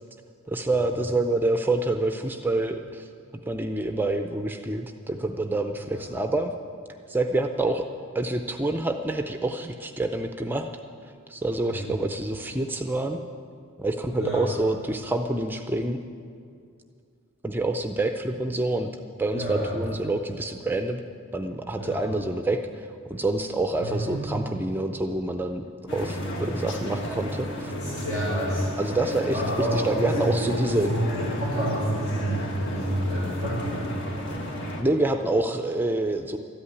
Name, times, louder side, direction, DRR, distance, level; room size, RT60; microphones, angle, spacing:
voice 1, 0.5-3.1 3.5-6.5 7.1-7.9 8.1-10.7 11.3-13.2 13.8-16.0 17.4-18.9 19.2-21.0 21.3-22.6 23.1-25.6 25.9-27.7 28.8-30.9 34.8-36.4, right 2 dB, 10° right, 6 dB, 0.5 m, -27 dB
voice 2, 19.3-19.7 21.8-22.0 23.8-24.2 27.9-28.6 29.3-33.9, equal, 85° left, -10 dB, 4.8 m, -28 dB
sound 1, 25.9-34.8, equal, 55° left, 1.6 m, -33 dB
13.5 x 8.7 x 9.6 m, 2.3 s
head